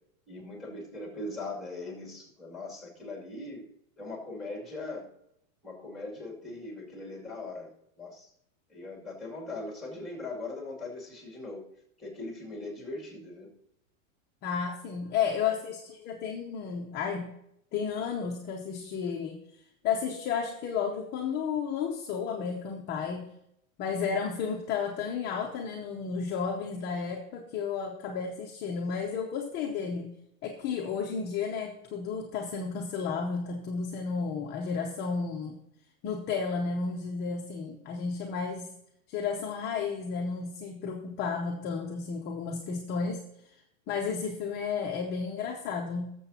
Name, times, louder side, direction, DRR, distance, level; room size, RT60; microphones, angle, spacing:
voice 1, 0.3-3.6 4.0-5.1 5.6-7.7 8.0-8.3 8.7-11.6 12.0-13.5, left 2 dB, ahead, -1 dB, 2.5 m, -40 dB
voice 2, 14.4-17.3 17.7-19.4 19.8-23.3 23.8-30.1 30.4-35.6 36.0-38.7 39.1-43.2 43.9-46.1, left 6 dB, 25° left, 0 dB, 0.8 m, -32 dB
18.0 x 7.1 x 2.8 m, 0.77 s
supercardioid pair, 155°, 41 cm